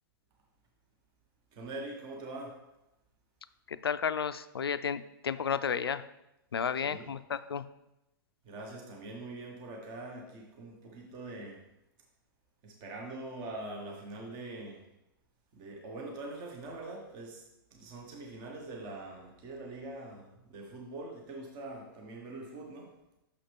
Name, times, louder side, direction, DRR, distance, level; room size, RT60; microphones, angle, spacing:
voice 1, 1.5-2.6 6.8-7.1 8.4-11.6 12.6-14.8 15.5-17.4 17.7-22.9, right 2 dB, 35° right, 0 dB, 1.4 m, -43 dB
voice 2, 3.7-6.0 6.5-7.6, left 7 dB, 80° left, 13 dB, 0.4 m, -32 dB
6.5 x 5.7 x 3.5 m, 0.89 s
figure-of-eight pair, 110°, 12 cm